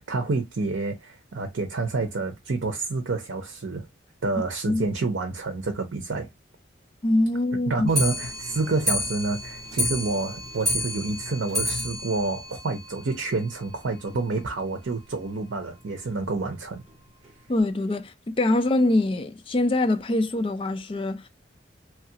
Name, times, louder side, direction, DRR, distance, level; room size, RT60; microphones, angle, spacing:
voice 1, 0.0-3.9 4.2-6.3 7.7-16.8, right 3 dB, 75° right, 0.6 m, -28 dB
voice 2, 7.0-7.9 17.5-21.3, left 2 dB, 25° left, 0.3 m, -24 dB
Clock, 7.9-13.4 13.7-13.8 14.1-14.2 14.5-14.6 14.9-15.0 15.7-15.8 16.5-16.6 17.2-17.3, left 1 dB, ahead, 1.2 m, -30 dB
3.1 x 2.4 x 2.7 m
head